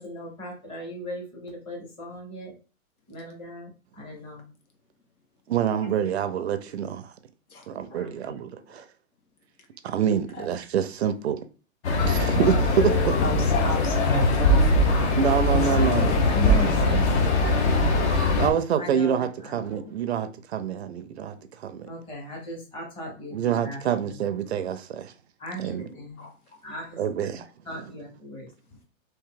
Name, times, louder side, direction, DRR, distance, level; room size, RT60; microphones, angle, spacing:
voice 1, 0.0-2.5 3.1-3.7 4.0-4.4 7.9-8.4 15.6-19.9 21.9-23.8 25.4-26.2 26.6-27.0 27.7-28.5, equal, 10° left, 0.8 m, -37 dB
voice 2, 5.5-7.1 7.7-8.8 9.8-11.4 12.0-13.2 15.2-16.1 16.4-17.0 18.4-21.9 23.3-25.1 25.6-25.9 27.0-27.9, right 8 dB, 50° right, 0.4 m, -27 dB
sound 1, 11.8-18.5, left 2 dB, 50° left, 1.0 m, -21 dB
voice 3, 13.2-15.1 15.5-15.7 26.2-26.3, left 2 dB, 85° left, 1.5 m, -31 dB
3.6 x 2.6 x 3.7 m
hypercardioid pair, 160°, 43 cm